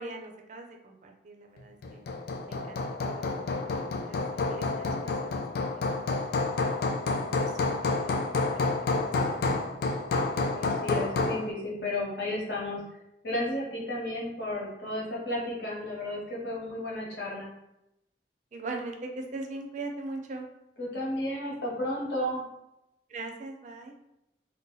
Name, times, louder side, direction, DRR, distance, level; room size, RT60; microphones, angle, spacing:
voice 1, 0.0-2.0 2.5-5.6 5.9-6.1 7.0-9.8 14.5-14.6 18.5-20.5 23.1-23.9, right 2 dB, 45° right, 3 dB, 0.4 m, -42 dB
Hammer, 1.8-11.5, left 3 dB, 60° left, 0.3 m, -29 dB
voice 2, 10.5-12.8 13.2-17.5 20.8-22.4, left 1 dB, 75° left, -4 dB, 1.2 m, -33 dB
2.7 x 2.1 x 3.8 m, 0.86 s
head